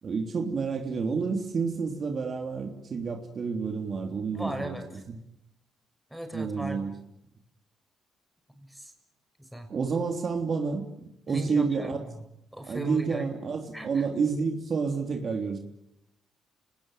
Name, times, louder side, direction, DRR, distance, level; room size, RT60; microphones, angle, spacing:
voice 1, 0.0-4.8 5.1-5.2 6.3-6.9 9.7-12.0 12.7-15.6, right 5 dB, 45° right, 4 dB, 3.4 m, -29 dB
voice 2, 4.3-5.0 6.1-7.0 8.6-8.9 9.4-9.7 11.3-12.0 12.5-13.3 13.7-14.0, right 1 dB, 5° right, 5 dB, 6.5 m, -38 dB
29.0 x 20.0 x 9.3 m, 0.83 s
cardioid pair, 90°, 0 cm